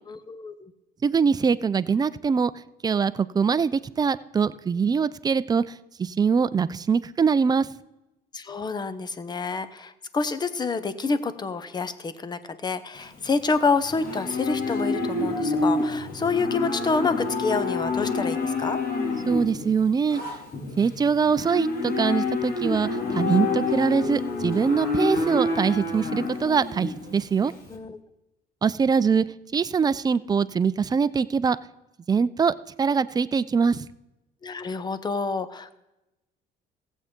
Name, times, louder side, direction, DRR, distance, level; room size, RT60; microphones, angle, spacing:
voice 1, 0.1-0.7 8.3-18.8 27.7-28.0 34.4-35.8, left 4 dB, 25° left, 13 dB, 0.8 m, -28 dB
voice 2, 1.0-2.5 2.8-7.7 19.3-20.2 20.8-27.5 28.6-29.3 29.5-31.6 32.1-33.9, right 6 dB, 25° right, 15 dB, 0.4 m, -23 dB
Livestock farm animals working animals, 13.0-27.7, left 3 dB, 55° left, 2.4 m, -28 dB
15.5 x 8.1 x 3.7 m, 0.96 s
cardioid pair, 110°, 17 cm